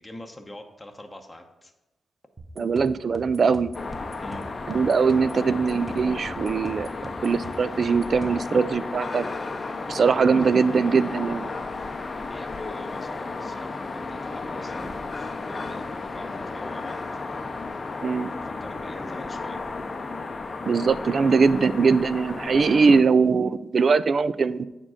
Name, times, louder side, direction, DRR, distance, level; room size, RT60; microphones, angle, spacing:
voice 1, 0.0-1.7 4.2-4.5 12.3-17.0 18.2-19.6, left 1 dB, 15° left, 3 dB, 0.9 m, -43 dB
sound 1, 2.4-8.6, right 1 dB, 20° right, 0.9 m, -43 dB
voice 2, 2.6-3.7 4.7-6.9 7.2-9.3 9.9-11.5 18.0-18.3 20.6-24.7, right 5 dB, 50° right, 15 dB, 0.3 m, -21 dB
sound 2, 3.7-23.0, left 3 dB, 35° left, 0.6 m, -33 dB
8.6 x 3.7 x 6.2 m, 1.0 s
cardioid pair, 85°, 0 cm